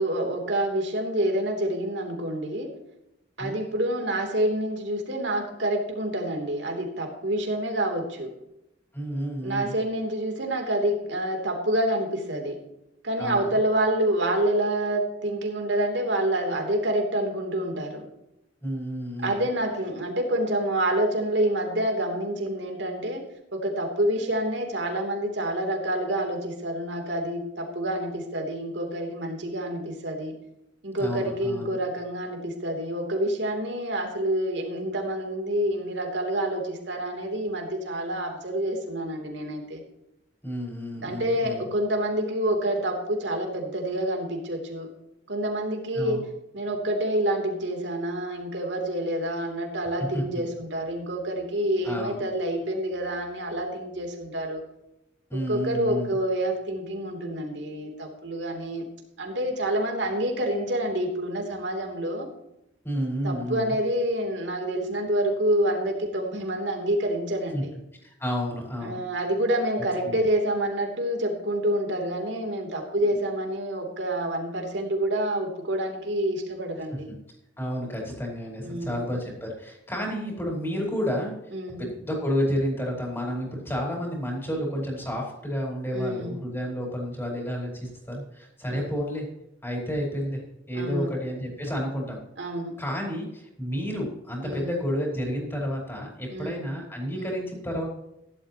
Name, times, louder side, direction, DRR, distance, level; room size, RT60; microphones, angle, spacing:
voice 1, 0.0-2.7 3.4-8.3 9.4-12.6 13.0-18.1 19.2-23.2 23.5-30.3 30.8-39.8 41.0-44.9 45.3-46.3 46.5-54.6 55.3-58.8 59.2-62.3 63.2-67.7 68.8-77.1 78.6-79.0 79.9-80.0 81.5-81.8 85.9-86.4 88.7-88.9 90.7-91.1 92.4-92.7 94.4-94.7 96.3-96.6 97.1-97.4, right 1 dB, 75° right, 2 dB, 3.1 m, -27 dB
voice 2, 8.9-9.7 13.2-13.5 18.6-19.4 31.0-31.8 40.4-41.6 45.9-46.2 50.1-50.2 51.8-52.2 55.3-56.2 62.8-63.7 67.5-67.6 68.0-69.0 70.0-70.3 76.9-77.2 77.6-81.3 81.8-89.3 89.6-90.4 90.7-92.2 92.8-97.9, equal, 15° left, -2 dB, 4.7 m, -31 dB
16.0 x 12.0 x 3.0 m, 0.86 s
head